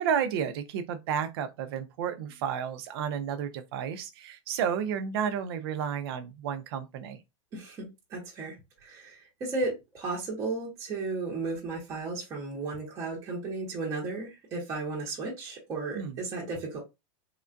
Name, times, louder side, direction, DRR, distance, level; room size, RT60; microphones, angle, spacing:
voice 1, 0.0-7.2 16.0-16.2, right 8 dB, 45° right, 0.5 m, -31 dB
voice 2, 7.5-8.5 8.8-16.8, right 3 dB, 20° right, 0.8 m, -34 dB
3.6 x 2.2 x 2.5 m
supercardioid pair, 175°, 17 cm